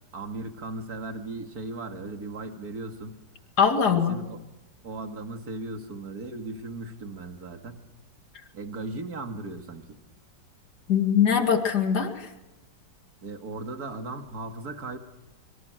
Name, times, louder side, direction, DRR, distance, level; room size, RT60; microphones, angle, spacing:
voice 1, 0.1-3.2 3.9-4.4 4.8-7.8 8.5-10.0 13.2-15.0, right 2 dB, 55° right, 5 dB, 2.5 m, -37 dB
voice 2, 3.6-4.2 10.9-12.3, left 7 dB, 60° left, 6 dB, 2.6 m, -22 dB
25.5 x 25.0 x 6.3 m, 1.0 s
omnidirectional pair, 2.0 m